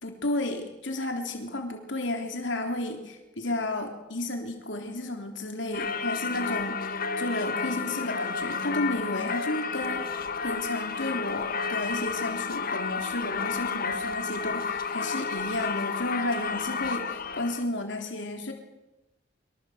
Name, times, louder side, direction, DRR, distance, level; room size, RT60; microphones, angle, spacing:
voice 1, 0.0-18.5, left 2 dB, 70° left, 4 dB, 3.4 m, -32 dB
Singing / Church bell, 5.7-17.6, left 5 dB, 50° left, 1.6 m, -31 dB
25.0 x 24.0 x 7.9 m, 0.99 s
head